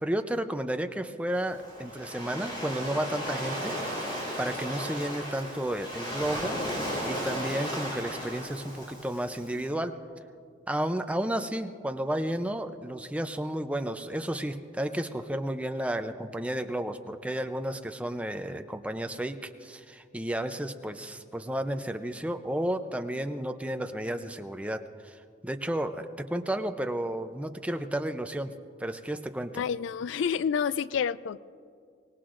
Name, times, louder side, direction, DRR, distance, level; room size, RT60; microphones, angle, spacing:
voice 1, 0.0-4.1 4.4-6.6 7.0-9.9 10.7-28.5 28.8-29.6, right 1 dB, 5° right, 7 dB, 0.5 m, -32 dB
Waves surf, 1.3-9.6, equal, 30° left, 4.4 m, -35 dB
voice 2, 29.6-31.4, left 7 dB, 75° left, 17 dB, 0.3 m, -29 dB
24.5 x 19.0 x 2.5 m, 2.2 s
head